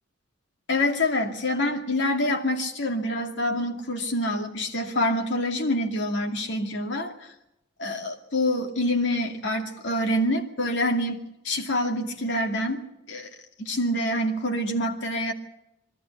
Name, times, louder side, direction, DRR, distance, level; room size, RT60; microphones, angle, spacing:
voice 1, 0.7-7.1 7.8-12.8 13.1-13.3 13.6-15.3, left 1 dB, 60° left, 2 dB, 2.5 m, -26 dB
23.5 x 13.0 x 9.4 m, 0.88 s
head